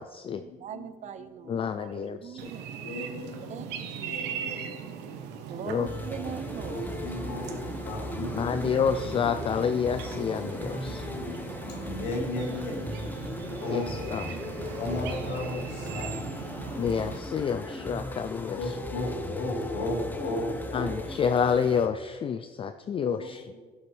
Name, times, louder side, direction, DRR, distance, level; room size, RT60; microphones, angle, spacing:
voice 1, 0.0-0.4 1.5-2.5 5.7-5.9 8.3-11.1 13.7-14.3 16.7-18.8 20.7-23.5, left 7 dB, 35° left, 10 dB, 0.3 m, -29 dB
voice 2, 0.6-2.7 3.5-4.3 5.5-7.0, right 8 dB, 45° right, 12 dB, 0.5 m, -41 dB
voice 3, 1.2-1.6 2.8-3.7 4.1-5.2 6.7-8.7 10.8-12.8 13.6-13.9 14.3-14.4 14.8-16.3 18.6-20.9 23.0-23.3, left 2 dB, 85° left, 0 dB, 1.9 m, -35 dB
sound 1, 2.4-17.2, right 7 dB, 90° right, 0.9 m, -40 dB
sound 2, 5.9-21.9, left 1 dB, 10° left, 0.8 m, -37 dB
11.5 x 6.9 x 3.4 m, 1.5 s
cardioid pair, 110°, 17 cm